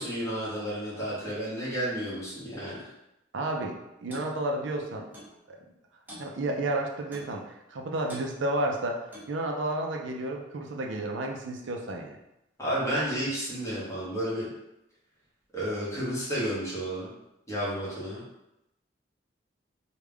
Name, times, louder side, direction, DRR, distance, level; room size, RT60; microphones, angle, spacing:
voice 1, 0.0-2.8 12.6-14.5 15.5-17.1 17.5-18.2, equal, 15° left, -9 dB, 1.4 m, -31 dB
voice 2, 3.3-5.1 5.5-5.6 6.2-9.0 9.3-12.2, right 1 dB, 80° right, 1 dB, 0.5 m, -31 dB
Clock, 4.1-4.3 5.1-5.3 6.1-6.3 7.1-7.4 8.1-8.3 9.1-9.4, equal, 10° right, 0.8 m, -45 dB
3.3 x 2.4 x 3.5 m, 0.89 s
head